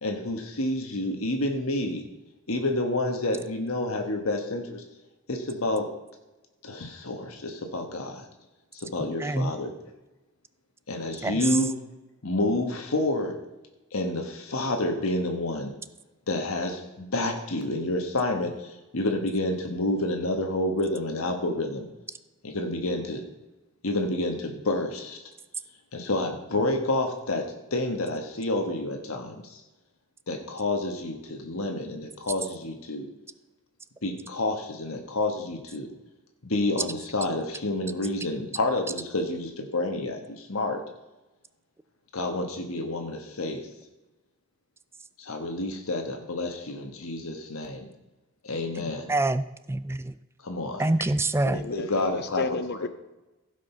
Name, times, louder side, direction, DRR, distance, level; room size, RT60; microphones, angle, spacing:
voice 1, 0.0-2.0 2.5-4.8 5.3-5.9 6.6-8.2 8.7-9.7 10.9-11.7 12.2-13.4 13.9-15.7 16.3-21.9 22.4-23.2 23.8-25.2 25.9-29.6 30.3-33.1 34.0-35.9 36.4-40.8 42.1-43.7 45.2-47.9 48.4-49.1 50.4-50.8 51.5-52.4, left 2 dB, 85° left, 1.3 m, -29 dB
voice 2, 9.2-9.5 11.2-11.6 48.8-49.4 49.7-50.1 50.8-51.6, right 2 dB, 10° right, 0.4 m, -26 dB
voice 3, 51.5-52.9, left 4 dB, 50° left, 0.7 m, -32 dB
15.5 x 5.2 x 5.6 m
head